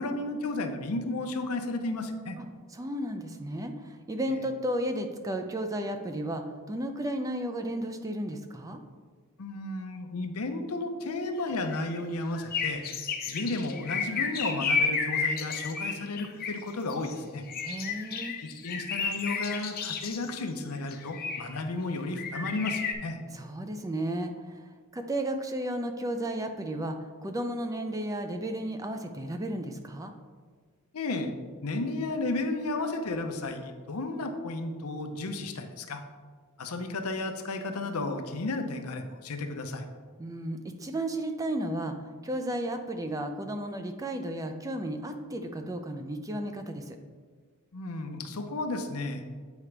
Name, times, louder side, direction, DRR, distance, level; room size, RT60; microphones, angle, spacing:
voice 1, 0.0-2.4 4.3-4.4 9.4-12.8 13.3-17.4 18.4-23.2 30.9-31.3 31.6-36.0 36.6-39.8 47.7-49.2, left 2 dB, 85° left, 6 dB, 0.7 m, -33 dB
voice 2, 2.7-8.8 17.6-18.3 23.3-24.6 24.9-30.1 40.2-42.0 42.2-47.0, right 1 dB, 15° right, 6 dB, 0.4 m, -33 dB
sound 1, 11.5-12.0 12.4-17.1 17.5-20.3 20.9-21.6 22.2-22.9, left 5 dB, 45° left, 0.6 m, -32 dB
8.2 x 4.9 x 3.3 m, 1.5 s
head